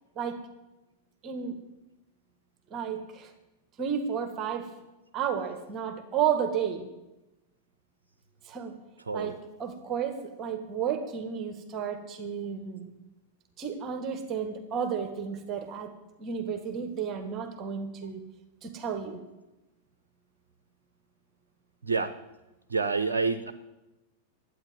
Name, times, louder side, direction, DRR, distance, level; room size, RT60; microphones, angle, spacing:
voice 1, 1.2-1.6 2.7-3.3 3.8-4.7 5.1-6.9 8.4-8.7 9.1-12.9 13.6-15.9 16.2-18.2 18.6-19.2, right 7 dB, 30° right, 7 dB, 1.6 m, -32 dB
voice 2, 22.7-23.5, right 4 dB, 70° right, 11 dB, 0.7 m, -27 dB
11.5 x 9.1 x 9.5 m, 1.0 s
figure-of-eight pair, 90°, 0 cm